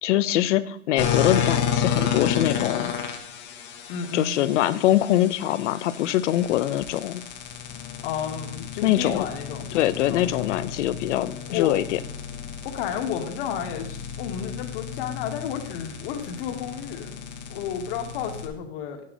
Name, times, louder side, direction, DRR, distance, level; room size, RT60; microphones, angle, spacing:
voice 1, 0.0-2.9 4.1-7.2 8.8-9.3 9.7-12.0, left 13 dB, 70° left, 15 dB, 0.8 m, -23 dB
sound 1, 1.0-18.5, left 8 dB, 30° left, 1.2 m, -31 dB
voice 2, 3.9-4.3 8.0-9.7 10.1-10.3 11.5-11.8 12.6-17.2 17.5-19.0, left 8 dB, 50° left, 5 dB, 1.9 m, -32 dB
10.0 x 9.4 x 4.0 m, 0.67 s
supercardioid pair, 160°, 36 cm